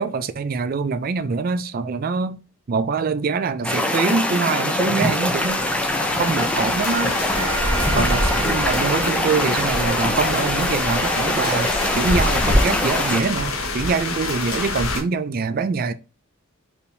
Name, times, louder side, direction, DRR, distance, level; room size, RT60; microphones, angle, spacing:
voice 1, 0.0-2.4 2.7-5.6 6.1-7.2 7.9-15.9, right 4 dB, 45° right, 0.4 m, -24 dB
sound 1, 3.6-13.2, left 1 dB, 5° left, 0.5 m, -23 dB
sound 2, 5.1-15.0, left 2 dB, 80° left, 1.1 m, -26 dB
sound 3, 7.3-11.0, right 4 dB, 70° right, 1.1 m, -32 dB
4.5 x 3.4 x 2.6 m
head